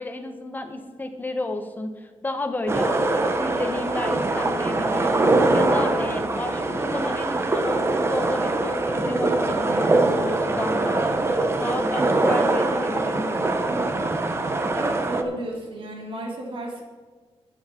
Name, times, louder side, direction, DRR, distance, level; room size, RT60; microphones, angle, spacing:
voice 1, 0.0-13.8, left 2 dB, 15° left, 6 dB, 1.2 m, -32 dB
sound 1, 2.7-15.2, right 2 dB, 25° right, 1.0 m, -23 dB
voice 2, 14.7-16.8, right 1 dB, 55° right, 0 dB, 3.0 m, -32 dB
13.0 x 9.1 x 4.5 m, 1.5 s
wide cardioid pair, 165°, 10 cm